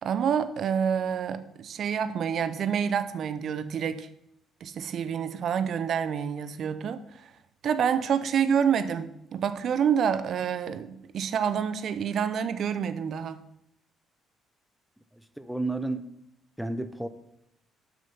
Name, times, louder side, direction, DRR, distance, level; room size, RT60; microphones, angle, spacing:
voice 1, 0.0-4.1 4.6-7.0 7.6-13.4, right 7 dB, 55° right, 11 dB, 0.6 m, -28 dB
voice 2, 15.1-16.0 16.6-17.1, right 2 dB, ahead, 9 dB, 0.8 m, -32 dB
7.8 x 6.1 x 5.5 m, 0.79 s
hypercardioid pair, 45°, 0 cm